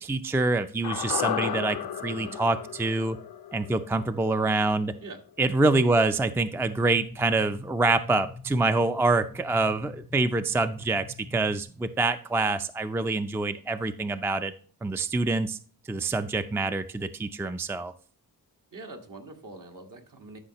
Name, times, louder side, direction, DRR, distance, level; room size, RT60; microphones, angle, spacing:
voice 1, 0.0-3.2 3.5-4.9 5.4-11.1 11.3-14.5 14.8-15.6 15.9-17.9, right 3 dB, 5° right, 10 dB, 0.4 m, -26 dB
sound 1, 0.8-5.1 5.4-5.5, left 10 dB, 85° left, 0.6 m, -34 dB
voice 2, 2.0-2.4 5.0-5.2 18.7-20.4, right 2 dB, 60° right, 3 dB, 1.6 m, -44 dB
sound 2, 6.5-11.6, left 3 dB, 85° right, 3.2 m, -45 dB
12.5 x 5.6 x 2.9 m, 0.42 s
wide cardioid pair, 100°, 37 cm